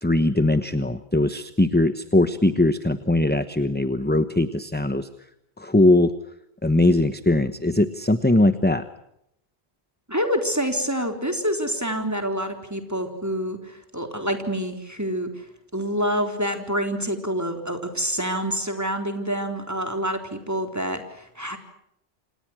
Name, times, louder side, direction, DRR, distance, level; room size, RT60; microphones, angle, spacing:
voice 1, 0.0-5.1 5.6-6.1 6.6-8.8, left 2 dB, 10° left, 11 dB, 1.1 m, -20 dB
voice 2, 10.1-15.4 15.7-21.6, equal, 15° right, 5 dB, 3.9 m, -27 dB
29.0 x 27.5 x 6.2 m, 0.79 s
omnidirectional pair, 1.1 m